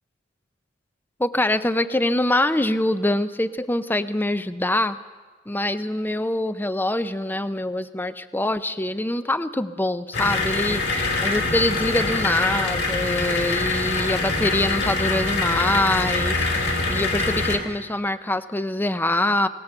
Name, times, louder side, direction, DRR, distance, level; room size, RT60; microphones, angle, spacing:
voice 1, 1.2-5.0 5.5-19.5, left 1 dB, 10° left, 12 dB, 0.6 m, -24 dB
sound 1, 10.1-17.6, left 3 dB, 60° left, 3.2 m, -24 dB
23.5 x 19.0 x 7.1 m, 1.4 s
head